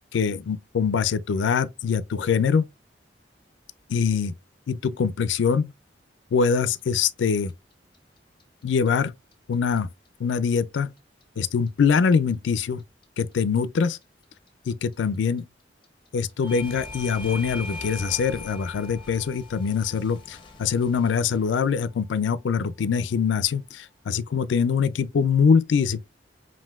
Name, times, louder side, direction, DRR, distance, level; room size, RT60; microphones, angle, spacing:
voice 1, 0.1-2.7 3.9-4.3 4.7-5.7 6.3-7.5 8.6-9.1 9.5-9.9 10.2-10.9 11.4-12.8 13.2-14.0 14.7-15.4 16.1-26.0, left 6 dB, 80° left, 0.4 m, -23 dB
Clock, 6.8-9.8 10.1-13.0 13.3-22.2, left 2 dB, 25° left, 0.8 m, -46 dB
Bell / Doorbell, 16.4-21.6, left 2 dB, 10° right, 1.0 m, -41 dB
5.5 x 2.6 x 2.3 m
head